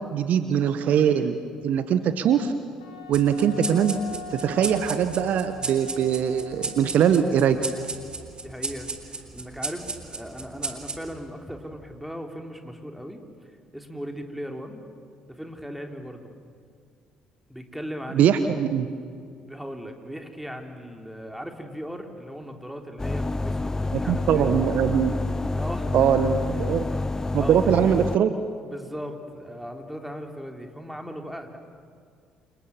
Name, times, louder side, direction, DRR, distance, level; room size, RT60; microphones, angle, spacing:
voice 1, 0.0-1.4 1.6-2.5 3.1-7.6 18.1-18.9 23.9-25.1 25.9-26.9 27.3-28.4, right 8 dB, 55° right, 10 dB, 1.2 m, -22 dB
Wind instrument woodwind instrument, 2.8-8.3, left 5 dB, 80° left, 2.3 m, -42 dB
sound 1, 3.1-12.0, right 4 dB, 30° right, 3.5 m, -36 dB
voice 2, 8.4-13.2 13.5-14.8 15.3-16.3 17.5-18.6 19.3-24.5 25.5-26.0 27.3-27.6 28.6-31.6, equal, 5° right, 3 dB, 3.9 m, -38 dB
sound 2, 23.0-28.2, left 2 dB, 15° left, 0.6 m, -28 dB
29.0 x 27.0 x 7.4 m, 2.3 s
figure-of-eight pair, 50°, 3 cm